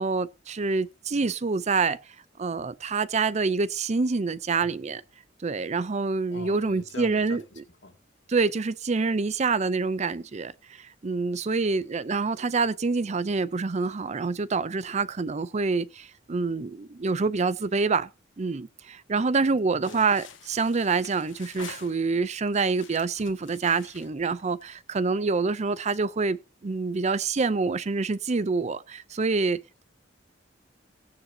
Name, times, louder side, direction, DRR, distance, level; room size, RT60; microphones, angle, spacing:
voice 1, 0.0-2.0 2.4-5.0 5.4-7.4 8.3-18.1 18.4-29.8, right 4 dB, 35° right, 0.5 m, -26 dB
voice 2, 6.3-8.0 19.7-20.1, left 2 dB, 65° left, 2.4 m, -44 dB
sound 1, 19.8-22.3 22.7-25.0, left 6 dB, 85° left, 1.7 m, -47 dB
17.5 x 9.4 x 2.8 m
head